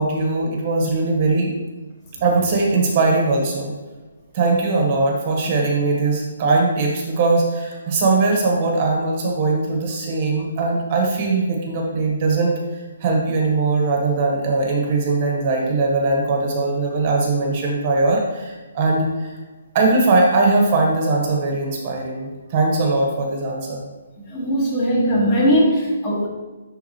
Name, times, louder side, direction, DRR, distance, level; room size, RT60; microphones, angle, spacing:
voice 1, 0.0-1.5 2.2-3.7 4.3-19.4 19.7-23.8, right 3 dB, 30° right, 0 dB, 1.1 m, -20 dB
voice 2, 24.3-26.3, equal, 25° left, -3 dB, 1.6 m, -19 dB
10.5 x 3.7 x 3.0 m, 1.3 s
hypercardioid pair, 160°, 0 cm